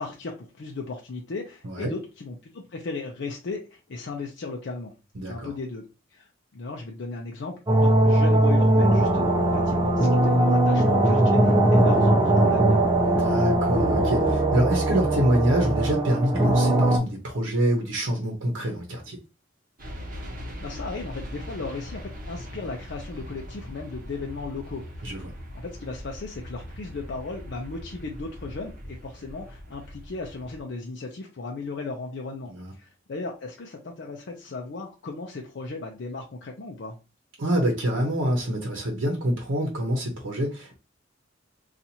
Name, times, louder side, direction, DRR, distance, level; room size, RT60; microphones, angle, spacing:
voice 1, 0.0-4.9 5.3-5.8 6.1-12.9 20.6-25.3 25.5-37.0, left 3 dB, 60° left, 1 dB, 0.5 m, -36 dB
voice 2, 5.1-5.5 13.0-19.2 25.0-25.3 32.5-32.7 37.4-40.8, equal, 90° right, 1 dB, 0.8 m, -26 dB
sound 1, 7.7-17.0, right 1 dB, 20° right, 0.5 m, -20 dB
sound 2, 19.8-30.6, equal, 45° right, 0.9 m, -40 dB
2.8 x 2.4 x 4.1 m, 0.31 s
head